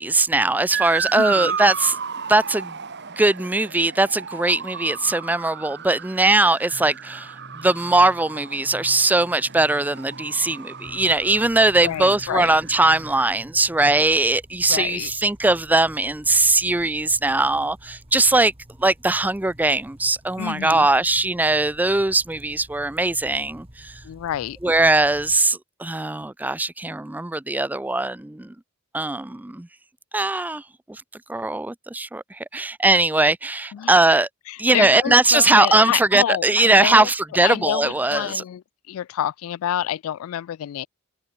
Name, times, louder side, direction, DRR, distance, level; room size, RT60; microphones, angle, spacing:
voice 1, 0.0-2.0 2.3-2.8 3.2-18.5 18.8-24.0 24.6-28.5 28.9-29.7 30.1-30.6 30.9-31.0 31.3-34.3 34.6-38.4, right 2 dB, 10° right, 0.4 m, -20 dB
Motor vehicle (road) / Siren, 0.7-13.3, right 7 dB, 55° right, 1.9 m, -34 dB
voice 2, 1.2-1.6 11.8-12.6 14.7-15.1 20.4-20.9 24.0-24.6 33.7-33.9 34.5-37.1 37.4-40.9, left 10 dB, 75° left, 0.3 m, -28 dB
sound 1, 6.7-14.3, equal, 25° left, 2.7 m, -48 dB
sound 2, 10.8-25.4, equal, 25° right, 2.9 m, -49 dB
head